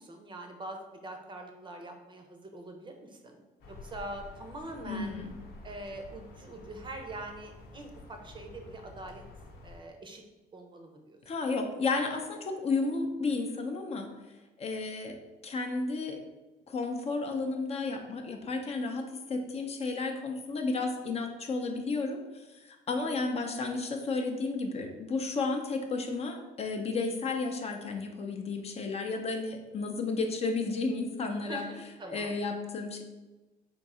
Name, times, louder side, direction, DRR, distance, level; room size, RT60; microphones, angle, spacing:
voice 1, 0.0-5.2 5.6-9.2 9.6-10.2 10.5-11.2 22.9-23.2 31.4-32.3, right 1 dB, 30° right, 4 dB, 0.6 m, -44 dB
sound 1, 3.6-9.8, left 2 dB, 70° left, 0.8 m, -50 dB
voice 2, 4.8-5.3 11.3-14.1 14.6-15.2 15.4-16.2 16.7-31.7 32.1-33.0, left 3 dB, 40° left, 4 dB, 0.6 m, -32 dB
3.7 x 2.7 x 4.2 m, 1.1 s
cardioid pair, 110°, 17 cm